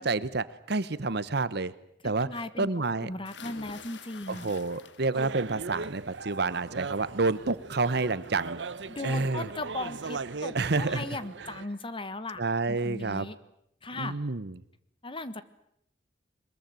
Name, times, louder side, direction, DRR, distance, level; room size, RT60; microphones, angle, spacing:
voice 1, 0.0-1.7 2.0-2.3 2.6-3.1 4.3-8.6 9.0-9.5 10.5-11.1 12.4-13.3 14.0-14.5, right 3 dB, 65° right, 16 dB, 1.0 m, -29 dB
voice 2, 2.0-2.7 3.0-4.5 8.9-12.4 12.7-13.3 13.8-14.1 15.0-15.4, left 2 dB, 30° left, 13 dB, 1.4 m, -37 dB
sound 1, 3.3-5.3 5.7-6.2 7.6-7.7 8.1-8.2, left 4 dB, 90° left, 1.7 m, -47 dB
sound 2, 5.1-11.6, right 4 dB, 85° right, 0.9 m, -39 dB
22.5 x 21.5 x 9.2 m, 0.75 s
head